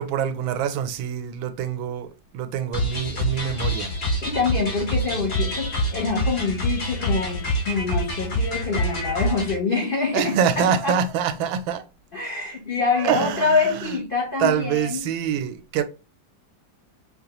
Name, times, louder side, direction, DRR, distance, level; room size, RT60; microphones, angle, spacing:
voice 1, 0.0-2.1 2.3-3.9 10.1-11.8 13.0-13.9 14.4-15.8, right 8 dB, 85° right, 1.4 m, -25 dB
sound 1, 2.7-9.6, equal, 45° left, 1.7 m, -26 dB
voice 2, 4.2-11.0 12.1-15.1, left 4 dB, 75° left, 0.5 m, -25 dB
5.1 x 2.3 x 2.8 m
omnidirectional pair, 2.1 m